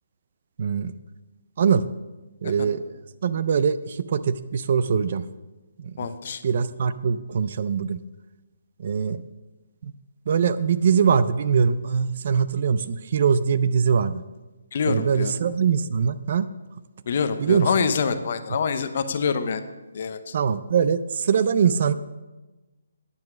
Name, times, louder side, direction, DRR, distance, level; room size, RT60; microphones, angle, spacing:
voice 1, 0.6-0.9 1.6-1.8 2.4-5.2 5.8-6.1 6.4-8.0 8.8-9.2 9.8-9.9 10.3-14.1 14.9-16.5 17.4-17.7 20.3-21.9, right 6 dB, 35° right, 14 dB, 0.3 m, -22 dB
voice 2, 6.0-6.4 14.7-15.3 17.1-19.6 19.9-20.3, left 6 dB, 35° left, 10 dB, 0.7 m, -25 dB
9.5 x 7.8 x 6.0 m, 1.1 s
hypercardioid pair, 175°, 0 cm